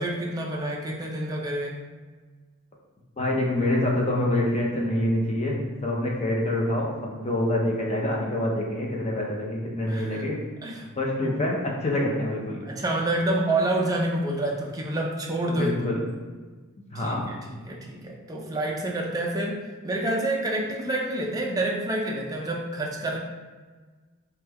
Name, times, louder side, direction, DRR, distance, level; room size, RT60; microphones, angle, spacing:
voice 1, 0.0-1.8 9.9-10.2 10.6-10.9 11.2-11.4 12.7-15.8 16.9-23.2, right 1 dB, 15° right, -1 dB, 0.3 m, -28 dB
voice 2, 3.2-10.4 11.0-12.6 15.4-16.0 16.9-17.3, left 1 dB, 30° left, -2 dB, 0.6 m, -26 dB
3.1 x 2.2 x 3.4 m, 1.4 s
head